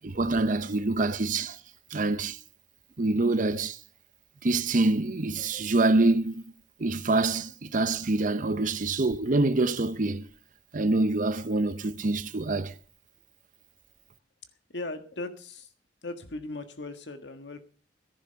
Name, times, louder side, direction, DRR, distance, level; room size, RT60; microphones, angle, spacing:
voice 1, 0.0-1.6 1.9-2.4 3.0-3.8 4.4-6.4 6.8-10.3 10.7-12.7, right 2 dB, 50° right, 0.7 m, -26 dB
voice 2, 14.7-15.7 16.0-17.6, left 2 dB, 85° left, 1.6 m, -38 dB
15.0 x 10.5 x 5.7 m
head